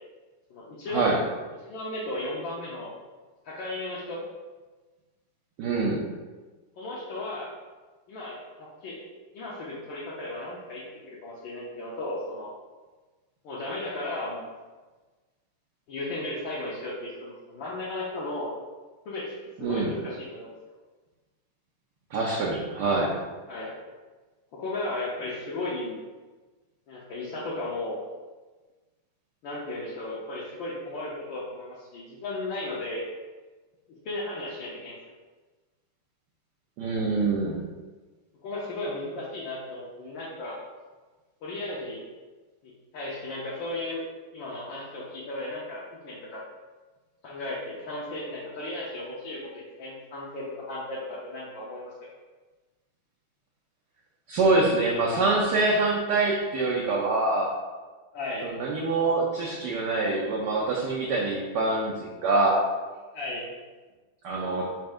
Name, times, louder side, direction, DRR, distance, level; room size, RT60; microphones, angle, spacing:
voice 1, 0.5-1.2 1.6-2.9 3.4-4.2 6.8-7.5 8.1-9.0 9.3-12.5 13.4-14.5 15.9-18.5 19.0-20.5 23.5-23.8 24.5-26.0 26.9-28.0 29.4-33.0 34.0-35.0 38.4-40.6 41.4-42.0 42.6-44.0 44.3-46.4 47.2-51.9 58.1-58.5 63.1-63.5, left 2 dB, 70° left, -6 dB, 1.5 m, -35 dB
voice 2, 5.6-6.0 19.6-19.9 22.1-23.1 36.8-37.6 54.3-57.5 58.4-62.6 64.2-64.7, right 3 dB, 70° right, -3 dB, 1.1 m, -25 dB
4.3 x 2.5 x 4.7 m, 1.3 s
omnidirectional pair, 2.3 m